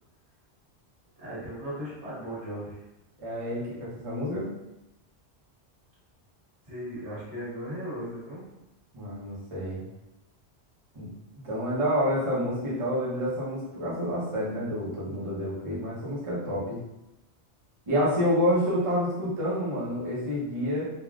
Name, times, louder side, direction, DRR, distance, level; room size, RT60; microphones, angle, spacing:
voice 1, 1.2-2.8 6.7-8.5, equal, 85° right, -9 dB, 1.7 m, -37 dB
voice 2, 3.2-4.5 8.9-9.8 10.9-11.1 11.4-16.8 17.9-20.8, equal, 30° right, -8 dB, 0.8 m, -28 dB
3.5 x 2.3 x 2.4 m, 0.92 s
omnidirectional pair, 1.1 m